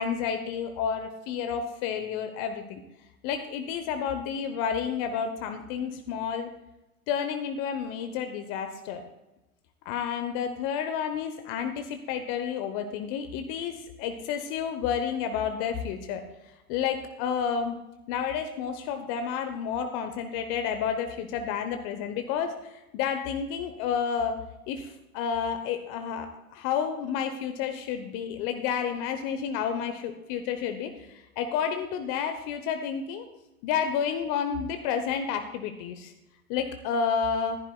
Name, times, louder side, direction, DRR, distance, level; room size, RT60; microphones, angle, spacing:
voice 1, 0.0-2.8 3.2-6.5 7.1-9.0 9.8-16.2 16.7-17.8 18.1-24.4 24.7-33.3 33.6-36.1 36.5-37.6, left 7 dB, 50° left, 7 dB, 1.1 m, -30 dB
14.5 x 11.0 x 2.4 m, 0.99 s
hypercardioid pair, 90°, 42 cm